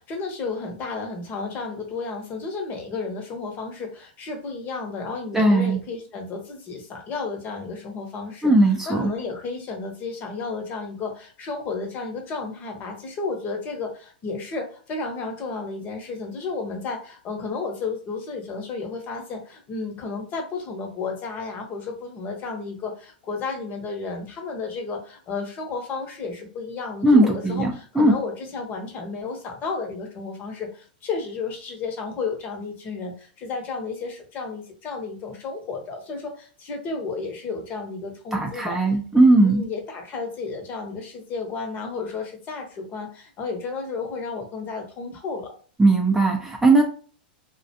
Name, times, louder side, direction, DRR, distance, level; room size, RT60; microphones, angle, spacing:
voice 1, 0.0-8.5 8.8-38.8 39.1-45.5, left 4 dB, 35° left, 3 dB, 0.8 m, -32 dB
voice 2, 5.3-5.8 8.4-9.1 27.0-28.2 38.3-39.6 45.8-46.8, right 2 dB, 10° right, 1 dB, 0.4 m, -18 dB
2.3 x 2.1 x 2.7 m, 0.41 s
hypercardioid pair, 120°, 5 cm